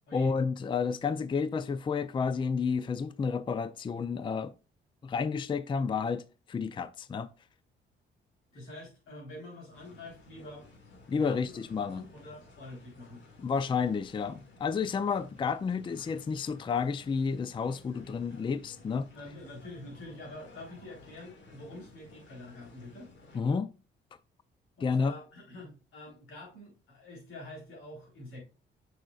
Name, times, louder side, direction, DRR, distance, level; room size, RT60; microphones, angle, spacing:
voice 1, 0.1-4.5 5.0-7.3 11.1-12.1 13.4-19.1 23.3-23.7 24.8-25.2, left 5 dB, 25° left, 0.4 m, -31 dB
voice 2, 8.5-10.7 11.1-11.6 11.9-13.2 19.1-23.1 24.8-28.4, left 1 dB, 85° left, 3.8 m, -46 dB
sound 1, 9.7-23.4, left 3 dB, 70° left, 2.0 m, -55 dB
6.5 x 6.3 x 2.3 m
cardioid pair, 90°, 20 cm